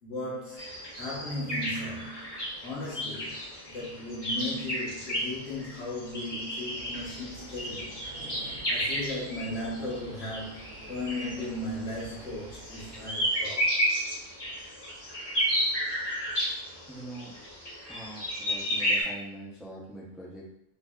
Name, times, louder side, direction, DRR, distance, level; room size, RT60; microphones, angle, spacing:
voice 1, 0.0-8.0 8.7-13.8, left 1 dB, 60° left, -6 dB, 1.5 m, -37 dB
sound 1, 0.6-19.0, equal, 20° left, 1.0 m, -33 dB
sound 2, 6.7-13.1, right 1 dB, 85° right, 1.1 m, -48 dB
voice 2, 16.9-17.4 17.9-20.5, right 1 dB, ahead, -4 dB, 0.4 m, -43 dB
4.0 x 3.2 x 2.4 m, 0.79 s
omnidirectional pair, 1.3 m